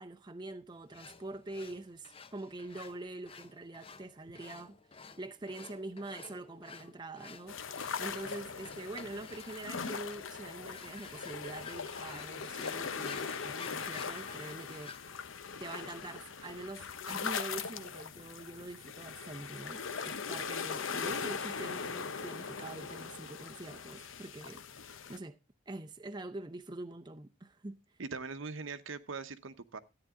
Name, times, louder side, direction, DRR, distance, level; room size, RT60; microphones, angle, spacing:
voice 1, 0.0-14.9 15.6-25.4 25.7-27.8, right 2 dB, 20° right, 0.6 m, -45 dB
sound 1, 0.9-15.2, left 5 dB, 30° left, 0.6 m, -52 dB
sound 2, 7.5-25.2, left 6 dB, 75° left, 0.8 m, -40 dB
voice 2, 28.0-29.8, right 4 dB, 75° right, 0.9 m, -41 dB
13.5 x 9.5 x 3.7 m
head